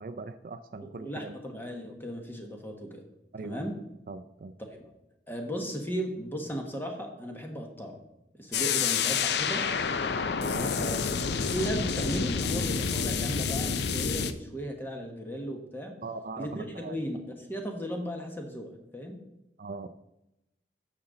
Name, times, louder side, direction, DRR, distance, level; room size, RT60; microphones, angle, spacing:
voice 1, 0.0-1.4 3.3-3.6 4.1-4.6 10.4-10.7 16.0-17.0 19.6-19.9, right 3 dB, 50° right, 10 dB, 0.4 m, -40 dB
voice 2, 1.0-3.0 3.4-3.7 4.8-4.9 5.3-8.0 8.4-9.7 10.7-11.0 11.4-16.0 16.4-17.2 17.5-19.2, equal, 10° left, 3 dB, 1.2 m, -36 dB
sound 1, 8.5-14.3, left 6 dB, 65° left, 0.5 m, -28 dB
9.8 x 6.6 x 3.9 m, 0.88 s
head